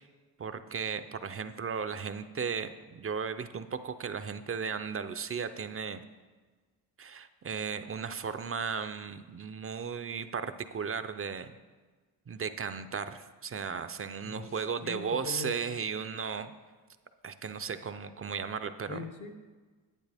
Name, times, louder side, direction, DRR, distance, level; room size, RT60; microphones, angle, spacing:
voice 1, 0.4-6.0 7.0-11.5 12.3-16.6 17.2-19.1, right 6 dB, 35° right, 10 dB, 0.5 m, -35 dB
voice 2, 14.2-15.5 18.9-19.3, left 3 dB, 55° left, 7 dB, 1.1 m, -41 dB
10.5 x 8.8 x 3.5 m, 1.3 s
cardioid pair, 80°, 40 cm